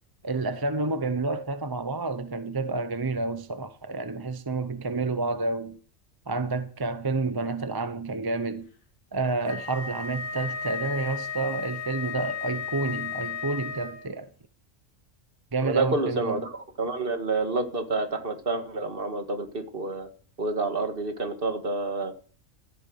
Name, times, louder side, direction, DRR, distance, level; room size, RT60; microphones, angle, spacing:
voice 1, 0.2-5.8 6.3-8.7 9.1-14.3 15.5-16.4, right 3 dB, 25° right, 0.6 m, -29 dB
Wind instrument woodwind instrument, 9.5-14.1, left 7 dB, 80° left, 2.2 m, -34 dB
voice 2, 15.6-20.1 20.4-22.1, right 3 dB, 45° right, 2.1 m, -28 dB
14.0 x 8.8 x 6.4 m
omnidirectional pair, 1.4 m